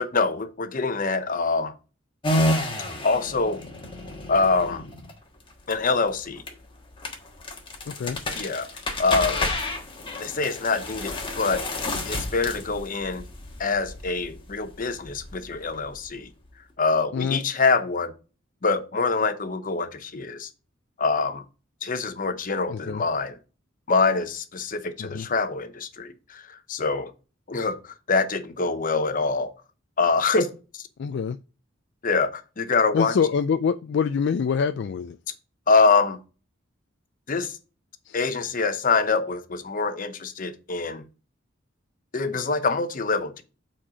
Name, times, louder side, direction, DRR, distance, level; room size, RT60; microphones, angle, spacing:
voice 1, 0.0-1.7 3.0-3.6 4.3-4.8 5.7-6.4 8.3-8.7 9.0-9.5 10.2-11.6 12.0-13.2 13.6-16.3 16.8-18.1 18.6-20.5 21.0-21.4 21.8-23.4 23.9-27.1 27.5-29.5 30.0-30.5 32.0-33.1 35.7-36.2 37.3-37.6 38.1-41.0 42.1-43.4, left 4 dB, 45° left, 0.8 m, -25 dB
sound 1, 2.2-16.5, left 1 dB, 25° left, 1.4 m, -31 dB
voice 2, 7.9-8.2 17.1-17.4 22.7-23.0 25.0-25.3 31.0-31.4 32.9-35.2 38.1-38.2, left 6 dB, 60° left, 0.3 m, -25 dB
7.3 x 4.4 x 5.0 m
head